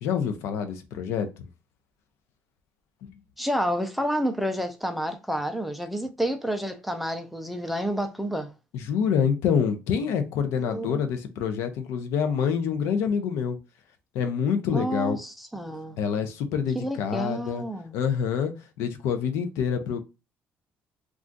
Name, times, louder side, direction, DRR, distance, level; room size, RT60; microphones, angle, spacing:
voice 1, 0.0-1.3 3.0-3.1 8.7-13.6 14.1-15.2 16.0-17.6 17.9-20.0, left 7 dB, 80° left, 0.5 m, -26 dB
voice 2, 3.4-8.5 10.5-11.0 14.7-16.0 16.7-18.0, equal, ahead, 0.3 m, -29 dB
2.4 x 2.3 x 3.7 m
cardioid pair, 155°, 5 cm